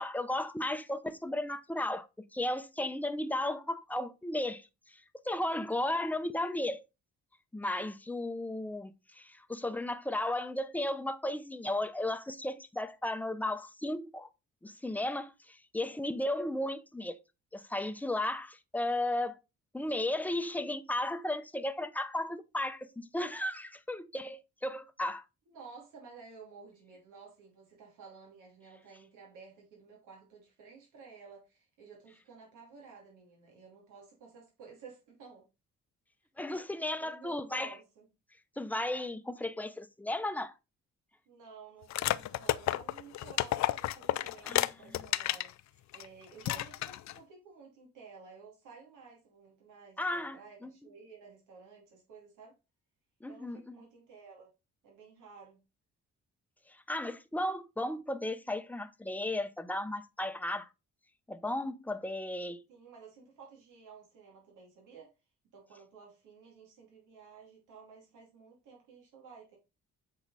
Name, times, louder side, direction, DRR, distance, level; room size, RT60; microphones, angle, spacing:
voice 1, 0.0-2.1 2.3-4.7 5.2-6.8 7.5-14.3 14.6-17.2 17.5-19.4 19.7-25.2 36.4-37.7 38.6-40.5 44.4-44.7 50.0-50.7 53.2-53.7 56.9-60.7 61.3-62.6, left 1 dB, 5° left, 0.8 m, -35 dB
voice 2, 25.5-35.4 36.5-38.1 41.3-52.6 53.3-54.5 54.8-55.6 62.7-65.1 65.5-69.6, right 5 dB, 85° right, 3.0 m, -53 dB
sound 1, 41.9-45.5 45.9-46.0 46.4-47.2, left 14 dB, 65° left, 0.5 m, -31 dB
8.1 x 4.8 x 4.1 m
cardioid pair, 90°, 30 cm